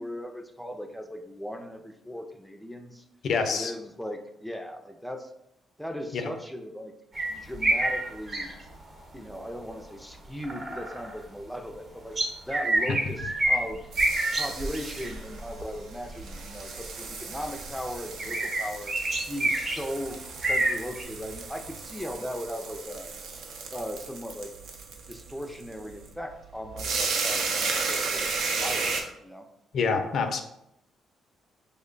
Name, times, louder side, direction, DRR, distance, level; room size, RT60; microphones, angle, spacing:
voice 1, 0.0-3.0 3.5-5.3 5.8-6.9 7.3-8.5 9.1-12.2 12.5-13.8 14.3-18.9 19.3-23.1 23.7-24.5 25.1-29.4, equal, ahead, 4 dB, 0.4 m, -38 dB
voice 2, 3.2-3.7 6.1-6.3 29.7-30.4, left 5 dB, 65° left, 7 dB, 0.4 m, -26 dB
sound 1, 7.1-8.7 10.4-11.1 12.2-13.6 14.0-14.5 14.7-15.1 15.8-15.9 17.3-17.6 18.2-20.0 20.4-21.0, right 1 dB, 40° right, 0.9 m, -27 dB
sound 2, 13.1-29.0, right 4 dB, 75° right, 0.5 m, -34 dB
3.2 x 2.1 x 3.7 m, 0.80 s
cardioid pair, 90°, 0 cm